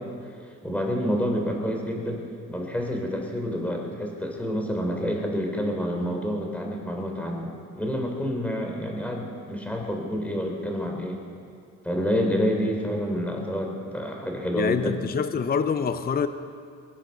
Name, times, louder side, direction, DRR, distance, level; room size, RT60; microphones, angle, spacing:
voice 1, 0.6-2.2 2.5-11.2 11.8-15.0, equal, 5° left, 1 dB, 3.7 m, -28 dB
voice 2, 14.6-16.3, left 6 dB, 30° left, 11 dB, 0.7 m, -25 dB
23.5 x 9.1 x 6.8 m, 2.5 s
cardioid pair, 90°, 30 cm